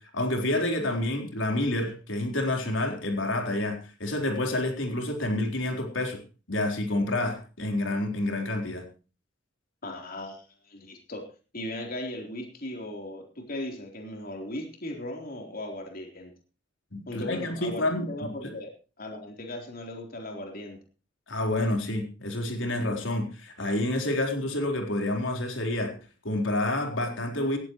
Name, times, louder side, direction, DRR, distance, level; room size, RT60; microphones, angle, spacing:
voice 1, 0.1-6.2 6.5-8.8 16.9-18.5 21.3-25.9 26.2-27.6, left 1 dB, 80° left, 3 dB, 4.2 m, -28 dB
voice 2, 9.8-11.2 11.5-16.3 17.1-18.7 19.0-20.8 25.1-25.3, left 1 dB, 50° left, 2 dB, 3.8 m, -37 dB
18.0 x 15.0 x 3.1 m, 0.35 s
head